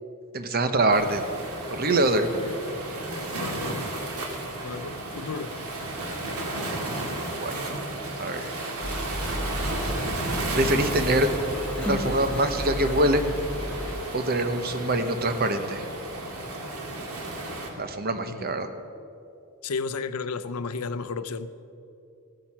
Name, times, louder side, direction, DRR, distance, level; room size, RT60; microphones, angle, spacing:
voice 1, 0.3-1.2 1.7-2.3 7.4-7.7 8.2-8.5 10.5-11.3 11.8-13.2 14.1-15.8 17.8-18.7, right 1 dB, 45° right, 8 dB, 0.9 m, -24 dB
Waves surf, 0.9-17.7, right 2 dB, 85° right, 2.1 m, -33 dB
voice 2, 2.3-2.6 3.1-3.8 4.6-5.6 18.3-18.5 19.6-21.5, left 4 dB, 85° left, 14 dB, 0.6 m, -33 dB
sound 1, 8.8-14.0, equal, 5° left, 1.5 m, -33 dB
15.5 x 9.0 x 7.2 m, 2.7 s
head